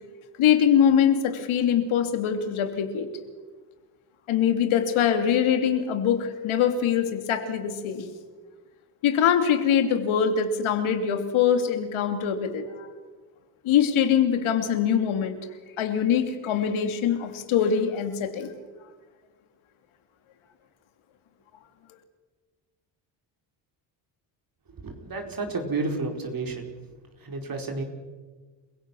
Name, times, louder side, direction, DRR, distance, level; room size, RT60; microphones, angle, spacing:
voice 1, 0.4-3.1 4.3-8.1 9.0-12.9 13.6-15.4 15.8-18.5, left 8 dB, 70° left, 7 dB, 2.8 m, -23 dB
voice 2, 24.8-26.6 27.2-27.8, right 3 dB, 45° right, 3 dB, 4.5 m, -31 dB
30.0 x 16.5 x 6.2 m, 1.4 s
supercardioid pair, 70°, 49 cm